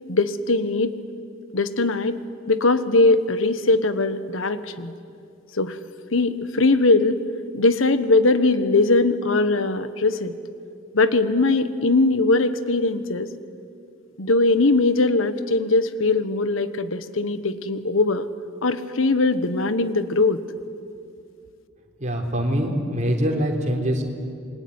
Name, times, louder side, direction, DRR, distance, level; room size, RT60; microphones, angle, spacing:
voice 1, 0.1-0.9 1.5-2.2 2.5-4.9 5.6-5.8 6.1-7.2 7.5-10.3 10.9-13.3 14.2-18.3 18.6-20.4, left 3 dB, 80° left, 12 dB, 1.3 m, -20 dB
voice 2, 22.0-24.0, equal, 40° right, 1 dB, 3.7 m, -23 dB
27.5 x 22.5 x 9.6 m, 2.4 s
head